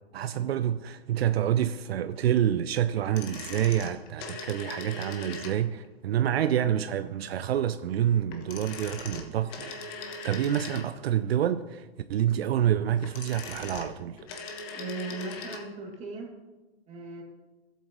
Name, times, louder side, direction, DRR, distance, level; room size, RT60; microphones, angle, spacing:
voice 1, 0.1-14.2, right 10 dB, 75° right, 0.5 m, -28 dB
sound 1, 3.0-5.9 8.3-11.2 12.8-15.7 15.9-16.0, left 4 dB, 35° left, 1.5 m, -40 dB
voice 2, 14.8-16.3 16.9-17.2, right 3 dB, 20° right, 2.5 m, -37 dB
13.5 x 8.1 x 3.1 m
hypercardioid pair, 130°, 31 cm